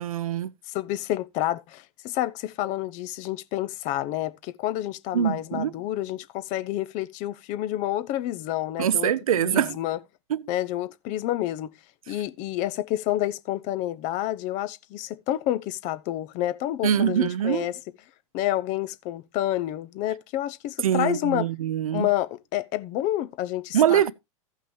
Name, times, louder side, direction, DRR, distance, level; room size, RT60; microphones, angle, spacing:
voice 1, 0.0-0.5 5.1-5.7 8.8-9.8 10.3-10.4 16.8-17.7 20.8-22.1 23.7-24.1, right 10 dB, 75° right, 0.6 m, -23 dB
voice 2, 0.7-9.1 9.4-10.0 10.5-11.7 12.1-17.7 18.3-21.4 21.9-24.0, left 14 dB, 45° left, 0.8 m, -29 dB
15.5 x 5.7 x 3.2 m
hypercardioid pair, 100°, 18 cm